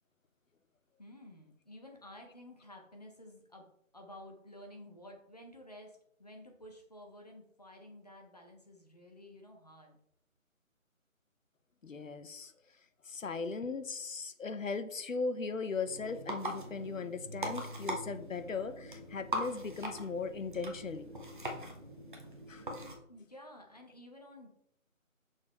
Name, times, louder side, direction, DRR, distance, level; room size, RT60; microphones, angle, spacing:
voice 1, 1.0-10.0 23.1-24.5, left 1 dB, 30° left, 2 dB, 0.9 m, -52 dB
voice 2, 11.8-12.5 13.0-21.1 22.5-22.6, left 4 dB, 65° left, 11 dB, 0.8 m, -38 dB
sound 1, 15.9-23.0, right 1 dB, 35° right, 0.9 m, -41 dB
6.2 x 4.4 x 4.1 m, 0.72 s
figure-of-eight pair, 165°, 41 cm